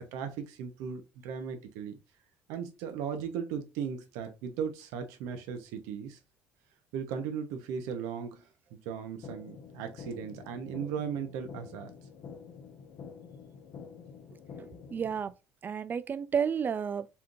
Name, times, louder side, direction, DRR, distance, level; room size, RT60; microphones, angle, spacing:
voice 1, 0.1-2.0 2.5-6.2 6.9-11.9, right 7 dB, 80° right, 1.0 m, -37 dB
sound 1, 9.2-15.2, left 6 dB, 60° left, 0.9 m, -48 dB
voice 2, 14.6-15.3 15.6-17.1, right 7 dB, 35° right, 0.4 m, -31 dB
4.3 x 3.7 x 2.5 m
supercardioid pair, 70°, 6 cm